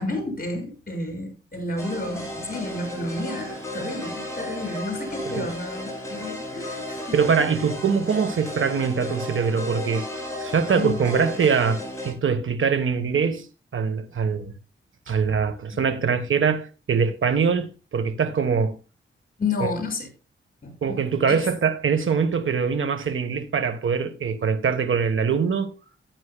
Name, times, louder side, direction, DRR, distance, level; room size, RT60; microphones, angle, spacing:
voice 1, 0.0-7.7 10.8-11.0 15.7-15.8 19.4-20.1 20.6-21.4, left 2 dB, 45° left, 6.3 m, -31 dB
sound 1, 1.8-12.1, left 1 dB, 15° left, 7.0 m, -34 dB
voice 2, 7.1-10.1 10.4-13.5 13.7-14.5 15.1-18.8 19.6-19.7 20.8-25.7, right 6 dB, 70° right, 1.3 m, -23 dB
15.0 x 9.5 x 2.3 m
wide cardioid pair, 85°, 21 cm